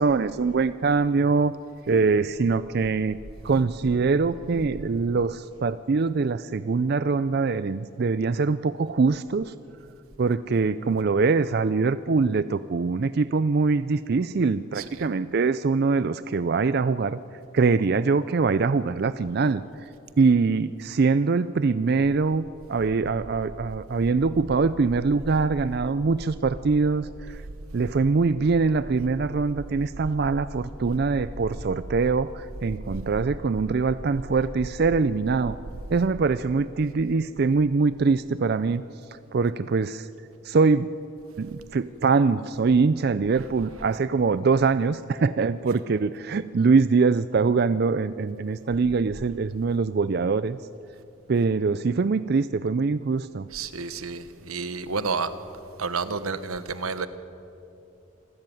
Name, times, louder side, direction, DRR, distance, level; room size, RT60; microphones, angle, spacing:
voice 1, 0.0-1.6 1.9-3.2 3.4-9.5 10.2-17.2 17.5-19.9 20.2-27.4 27.7-35.6 35.9-38.8 39.1-40.1 40.4-41.0 41.4-50.6 51.3-53.5, right 4 dB, 50° right, 14 dB, 0.4 m, -23 dB
voice 2, 14.7-15.1 25.4-25.8 27.9-28.3 29.9-30.4 32.8-33.2 33.6-33.8 34.3-34.4 34.7-34.8 43.3-43.8 45.7-45.8 53.5-55.3 55.8-57.1, right 4 dB, 90° right, 12 dB, 1.1 m, -32 dB
26.0 x 13.5 x 9.1 m, 2.7 s
head